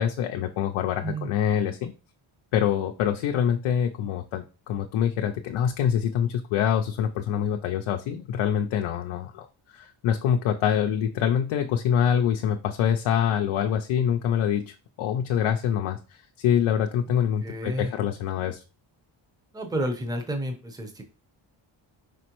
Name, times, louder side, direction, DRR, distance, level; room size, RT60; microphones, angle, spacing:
voice 1, 0.0-1.9 2.5-18.6, left 9 dB, 85° left, 4 dB, 0.6 m, -25 dB
voice 2, 17.1-17.9 19.5-21.0, right 1 dB, 10° right, 5 dB, 0.7 m, -31 dB
5.0 x 3.0 x 3.0 m, 0.33 s
cardioid pair, 100°, 48 cm